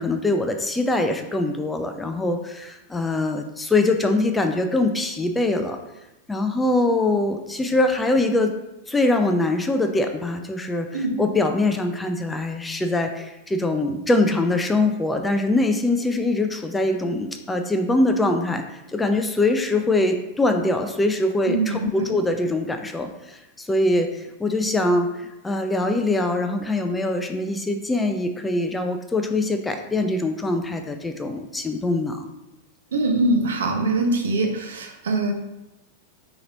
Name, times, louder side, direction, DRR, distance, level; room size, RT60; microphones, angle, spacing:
voice 1, 0.0-5.8 6.3-8.5 8.9-32.3, left 2 dB, 10° left, 6 dB, 0.3 m, -23 dB
voice 2, 21.5-22.1 32.9-35.3, right 2 dB, 65° right, 3 dB, 0.6 m, -23 dB
3.9 x 2.9 x 3.8 m, 0.95 s
figure-of-eight pair, 90°, 0 cm